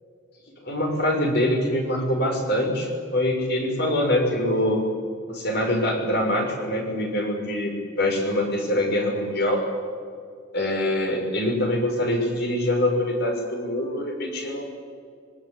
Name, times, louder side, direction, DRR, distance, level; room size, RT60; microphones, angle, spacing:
voice 1, 0.6-4.8 5.3-9.6 10.5-14.6, left 1 dB, 55° left, 2 dB, 6.2 m, -24 dB
25.5 x 23.0 x 10.0 m, 2.4 s
head